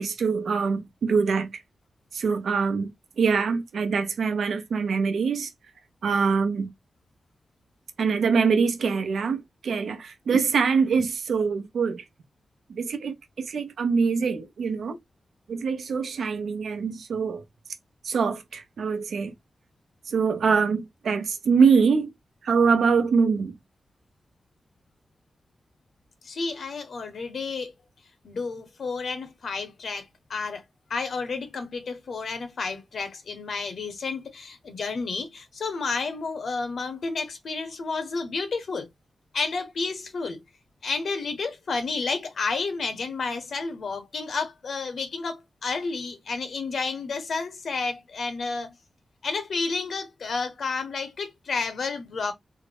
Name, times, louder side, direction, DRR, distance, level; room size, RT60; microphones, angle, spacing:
voice 1, 0.0-1.6 2.1-5.5 6.0-6.7 8.0-12.0 12.7-15.0 15.5-17.4 18.0-19.3 20.1-22.1 22.4-23.5, right 5 dB, 90° right, 0.7 m, -24 dB
voice 2, 26.2-27.7 28.2-30.6 30.9-38.9 39.3-40.4 40.8-48.7 49.2-52.3, left 4 dB, 75° left, 1.1 m, -31 dB
3.6 x 2.1 x 3.4 m
cardioid pair, 75°, 0 cm